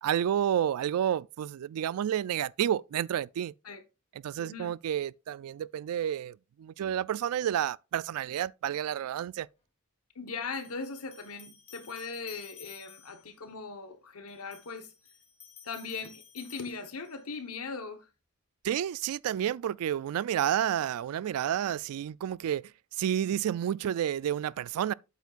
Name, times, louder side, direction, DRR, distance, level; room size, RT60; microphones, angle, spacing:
voice 1, 0.0-3.5 4.2-9.5 18.6-22.6 23.0-24.9, right 10 dB, 80° right, 0.3 m, -30 dB
voice 2, 4.4-4.7 10.1-14.9 15.6-18.1, left 4 dB, 80° left, 1.2 m, -39 dB
sound 1, 9.3-9.4 10.5-13.3 14.3-17.3, left 7 dB, 30° left, 1.8 m, -54 dB
8.3 x 8.1 x 2.4 m
head